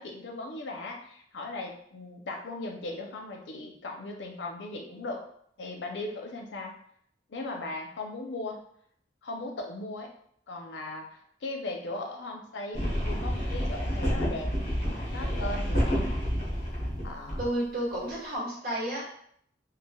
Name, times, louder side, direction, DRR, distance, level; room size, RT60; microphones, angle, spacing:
voice 1, 0.0-5.2 5.6-6.7 7.3-8.6 9.2-10.1 10.5-14.5 15.1-16.3 17.0-17.4, left 2 dB, 85° left, 1 dB, 0.6 m, -38 dB
sound 1, 12.7-17.5, equal, 45° left, 0.9 m, -29 dB
voice 2, 17.4-19.0, right 1 dB, 55° right, -6 dB, 1.2 m, -31 dB
3.2 x 2.3 x 2.3 m, 0.66 s
head